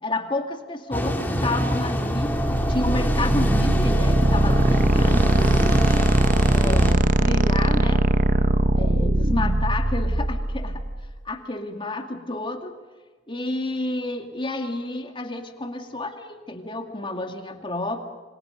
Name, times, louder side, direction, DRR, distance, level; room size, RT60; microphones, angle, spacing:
voice 1, 0.0-2.3 2.7-5.5 6.5-8.0 8.8-10.8 11.2-12.7 13.3-18.0, left 2 dB, 25° left, 5 dB, 2.3 m, -30 dB
sound 1, 0.9-6.9, equal, 10° left, 2.7 m, -24 dB
sound 2, 2.3-11.1, right 1 dB, 40° right, 0.9 m, -21 dB
28.5 x 25.5 x 5.3 m, 1.4 s
head